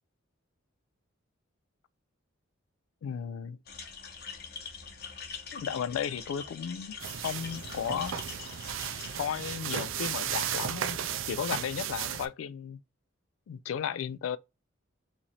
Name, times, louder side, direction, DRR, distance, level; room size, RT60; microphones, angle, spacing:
voice 1, 3.0-3.6 5.5-6.9 7.2-8.2 9.2-11.0 11.3-12.8 13.5-14.4, left 8 dB, 90° left, 0.3 m, -34 dB
sound 1, 3.7-9.2, left 6 dB, 50° left, 0.7 m, -43 dB
sound 2, 7.0-12.3, right 9 dB, 75° right, 0.4 m, -35 dB
3.0 x 2.6 x 3.9 m
head